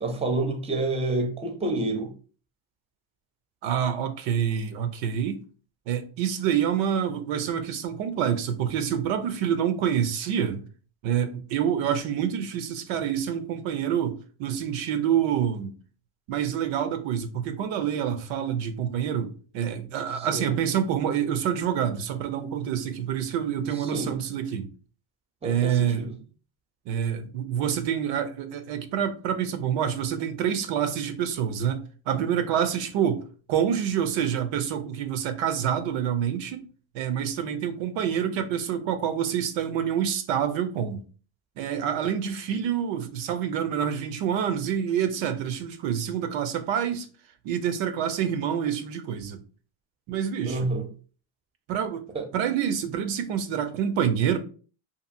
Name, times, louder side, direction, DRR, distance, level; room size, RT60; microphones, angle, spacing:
voice 1, 0.0-2.1 20.1-20.6 23.7-24.1 25.4-26.2 50.4-50.8 52.1-52.2, right 2 dB, 15° right, 0.6 m, -28 dB
voice 2, 3.6-5.4 5.9-10.6 11.0-15.7 16.3-24.7 25.4-26.1 26.9-36.7 36.9-41.0 41.6-47.1 47.4-49.4 50.1-50.7 51.7-52.1 52.3-54.4, right 8 dB, 75° right, 0.6 m, -27 dB
2.7 x 2.5 x 2.5 m
cardioid pair, 100°, 46 cm